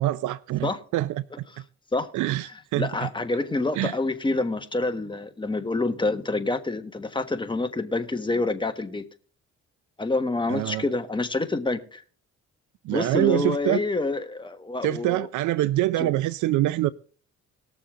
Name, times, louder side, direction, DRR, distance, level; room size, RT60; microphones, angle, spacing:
voice 1, 0.0-1.5 2.1-3.1 3.8-3.9 10.5-10.8 12.8-13.8 14.8-16.9, right 15 dB, 75° right, 0.5 m, -25 dB
voice 2, 2.7-9.0 10.0-12.0 12.9-15.3 16.0-16.1, left 2 dB, 15° left, 1.4 m, -27 dB
19.5 x 7.0 x 3.7 m
cardioid pair, 90°, 30 cm